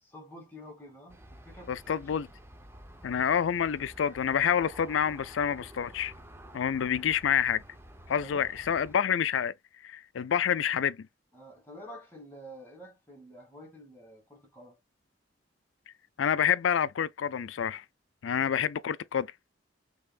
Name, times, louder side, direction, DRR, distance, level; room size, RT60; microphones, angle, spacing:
voice 1, 0.0-2.2 8.2-8.5 11.3-14.8, equal, 10° left, 2.2 m, -49 dB
Aircraft, 1.1-9.0, right 1 dB, 10° right, 0.7 m, -50 dB
voice 2, 1.7-2.3 3.0-6.1 6.5-7.6 8.1-9.5 9.8-11.1 16.2-17.8 18.2-19.3, left 8 dB, 75° left, 0.4 m, -28 dB
5.4 x 3.5 x 2.3 m
head